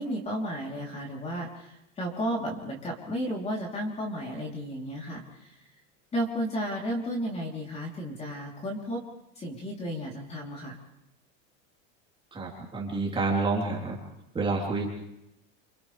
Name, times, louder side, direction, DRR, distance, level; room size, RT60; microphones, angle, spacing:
voice 1, 0.0-5.5 6.1-9.0 9.4-10.8, equal, 15° left, -1 dB, 3.5 m, -33 dB
voice 2, 12.3-14.0 14.3-14.9, right 3 dB, 15° right, -3 dB, 3.7 m, -28 dB
29.0 x 26.5 x 3.4 m, 0.86 s
supercardioid pair, 165°, 36 cm